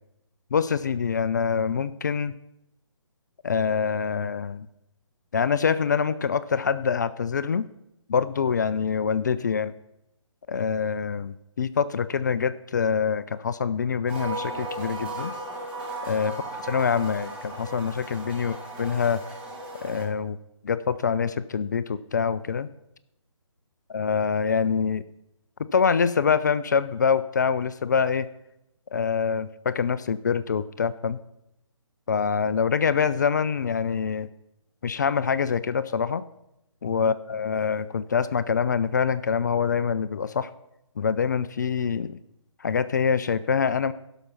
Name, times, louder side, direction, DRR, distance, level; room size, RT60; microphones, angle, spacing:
voice 1, 0.5-2.3 3.4-4.7 5.3-7.7 8.1-9.7 10.5-15.3 16.1-16.3 16.6-19.2 19.8-20.4 20.6-22.7 23.9-25.0 25.7-28.3 28.9-31.2 32.1-34.3 34.8-36.2 36.8-40.5 41.0-42.2 42.6-43.9, left 6 dB, 35° left, 15 dB, 0.4 m, -25 dB
sound 1, 14.1-20.0, right 2 dB, 5° right, 2.6 m, -36 dB
12.0 x 6.2 x 5.7 m, 0.83 s
figure-of-eight pair, 145°, 16 cm